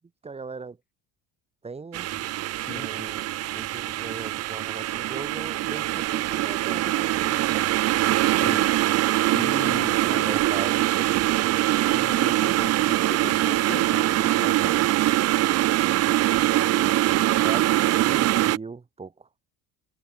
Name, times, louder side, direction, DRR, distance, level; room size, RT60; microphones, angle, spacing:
voice 1, 0.2-0.8 1.6-2.1 2.7-7.7 10.0-11.5 17.4-19.3, right 4 dB, 15° right, 3.9 m, -39 dB
sound 1, 1.9-18.6, right 15 dB, 40° right, 0.8 m, -23 dB
voice 2, 2.5-3.2 8.4-10.6 11.9-15.0, left 6 dB, 25° left, 5.8 m, -39 dB
cardioid pair, 165°, 38 cm